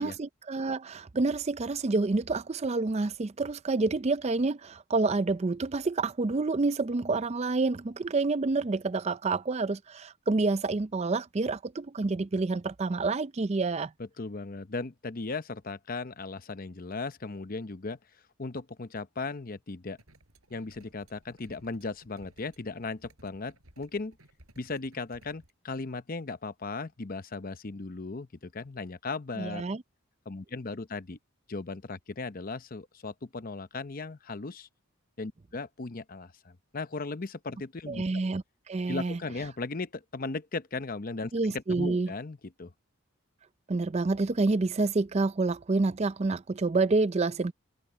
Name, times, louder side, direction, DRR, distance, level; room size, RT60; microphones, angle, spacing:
voice 1, 0.0-13.9 29.4-29.8 37.9-39.2 41.3-42.1 43.7-47.5, right 3 dB, 30° right, 0.4 m, -28 dB
voice 2, 14.2-18.0 18.4-20.0 20.5-24.2 24.6-29.6 30.3-31.2 31.5-34.7 35.2-38.0 38.9-42.7, left 3 dB, 40° left, 0.7 m, -37 dB
sound 1, 20.0-25.5, right 1 dB, 85° right, 7.0 m, -59 dB
head